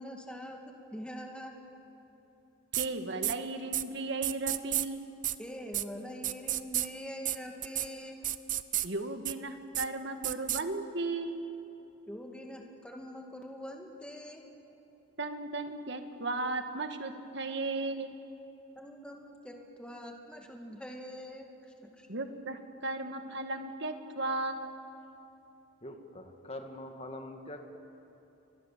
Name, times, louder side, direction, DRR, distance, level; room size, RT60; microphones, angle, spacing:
voice 1, 0.0-1.6 5.4-8.2 12.1-14.4 18.8-22.1, equal, 5° left, 2 dB, 1.9 m, -44 dB
sound 1, 2.7-2.9 3.2-3.3 3.7-3.8 4.2-4.9 5.2-5.4 5.7-5.8 6.2-6.9 7.3-7.4 7.6-7.9 8.2-8.9 9.3-9.4 9.7-9.9 10.2-10.6, right 13 dB, 40° right, 0.6 m, -31 dB
voice 2, 2.7-5.0 8.8-11.4 15.2-18.1 22.1-24.8, right 2 dB, 55° right, 7 dB, 1.7 m, -35 dB
voice 3, 25.8-27.8, left 1 dB, 30° left, 4 dB, 2.0 m, -44 dB
29.5 x 24.0 x 7.4 m, 2.9 s
head